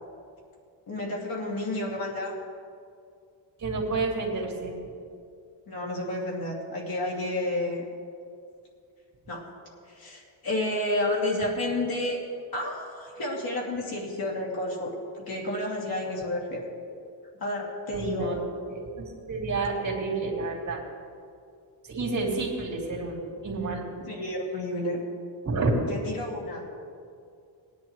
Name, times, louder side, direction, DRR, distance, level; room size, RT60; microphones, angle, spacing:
voice 1, 0.9-2.4 5.7-7.8 9.3-9.4 9.9-12.2 12.5-16.6 17.4-18.4 24.1-25.0 25.9-26.6, left 1 dB, 50° left, -2 dB, 2.7 m, -30 dB
voice 2, 3.6-4.7 17.9-18.4 18.7-18.9 19.3-20.8 21.9-24.1 25.4-25.7, right 3 dB, 35° right, -3 dB, 2.9 m, -29 dB
18.5 x 10.5 x 3.2 m, 2.4 s
cardioid pair, 145°, 47 cm